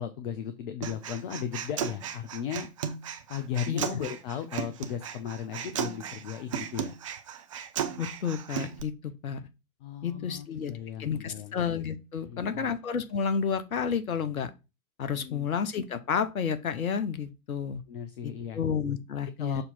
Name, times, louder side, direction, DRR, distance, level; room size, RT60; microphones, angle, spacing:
voice 1, 0.0-2.7 3.3-6.9 9.8-11.5 12.2-12.7 15.1-15.5 17.9-18.6 19.4-19.6, left 8 dB, 40° left, 0.6 m, -36 dB
Human voice, 0.8-8.8, right 8 dB, 25° right, 0.4 m, -36 dB
voice 2, 8.0-9.5 10.0-10.7 11.0-14.5 15.0-17.8 18.2-19.6, left 7 dB, 70° left, 0.9 m, -31 dB
6.7 x 2.9 x 5.4 m
figure-of-eight pair, 105°, 44 cm